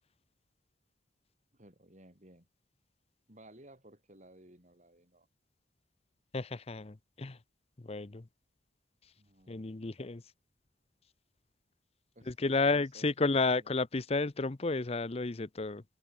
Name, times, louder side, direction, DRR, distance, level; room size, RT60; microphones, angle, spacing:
voice 1, 1.5-2.5 3.3-5.3 9.2-9.7 12.1-13.7, right 1 dB, 40° right, 7.9 m, -57 dB
voice 2, 6.3-7.4 7.8-8.3 9.5-10.2 12.3-15.8, left 3 dB, 35° left, 0.7 m, -32 dB
open air
head